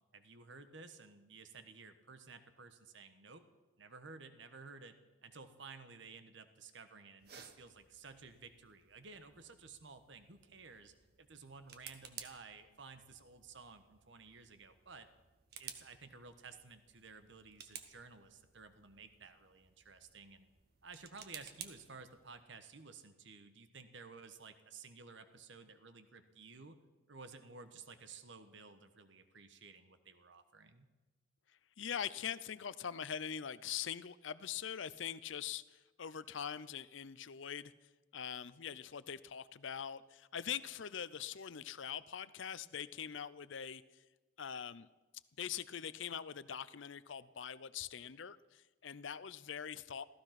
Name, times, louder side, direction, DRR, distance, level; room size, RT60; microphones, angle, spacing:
voice 1, 0.1-3.4 3.8-5.0 5.2-15.1 15.6-20.5 20.8-26.8 27.1-30.9, right 4 dB, 65° right, 10 dB, 1.2 m, -54 dB
sound 1, 7.2-22.4, right 8 dB, 50° right, 1.3 m, -56 dB
voice 2, 31.8-37.7 38.1-44.0 44.4-44.9 45.4-50.1, left 8 dB, 70° left, 17 dB, 0.6 m, -43 dB
15.5 x 14.5 x 5.9 m, 1.2 s
head